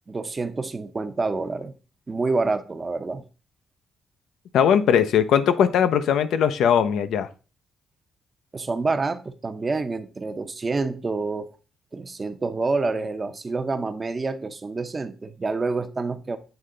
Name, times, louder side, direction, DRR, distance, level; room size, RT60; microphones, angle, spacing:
voice 1, 0.1-1.7 2.1-3.2 8.5-11.5 11.9-16.4, right 3 dB, 25° right, 0.6 m, -27 dB
voice 2, 4.5-7.3, left 8 dB, 85° left, 0.5 m, -19 dB
7.9 x 3.3 x 3.7 m
cardioid pair, 115°, 0 cm